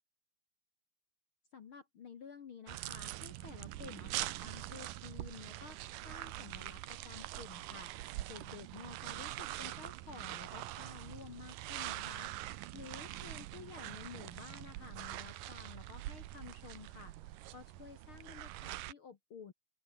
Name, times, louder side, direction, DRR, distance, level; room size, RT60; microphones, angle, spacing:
voice 1, 1.5-5.8 6.0-12.3 12.7-19.5, left 6 dB, 65° left, 1.3 m, -52 dB
sound 1, 2.7-18.9, right 15 dB, 70° right, 2.2 m, -44 dB
open air
omnidirectional pair, 4.7 m